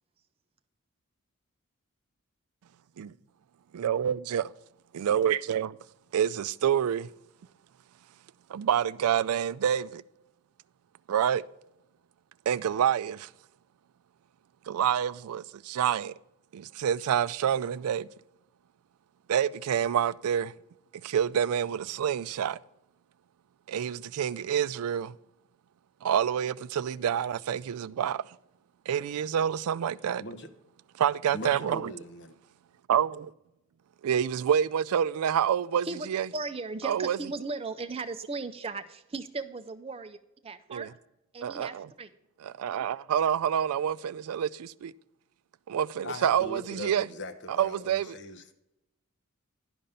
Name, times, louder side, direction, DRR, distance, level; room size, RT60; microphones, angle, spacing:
voice 1, 3.7-4.5 4.9-5.7 6.1-7.1 8.5-10.0 11.1-11.4 12.5-13.3 14.7-16.1 16.5-18.1 19.3-20.5 21.0-22.6 23.7-25.2 26.0-28.3 28.9-30.2 31.0-31.9 32.9-33.3 34.0-36.3 36.8-37.2 40.7-40.9 41.4-41.9 42.4-44.9 45.7-47.1 47.5-48.2, right 9 dB, 85° right, 0.3 m, -27 dB
voice 2, 30.2-30.5 31.3-32.3 46.0-48.5, left 2 dB, 55° left, 0.9 m, -40 dB
voice 3, 36.3-40.2 40.4-40.9 41.3-42.1, right 3 dB, 25° right, 0.5 m, -37 dB
11.0 x 5.2 x 5.5 m
head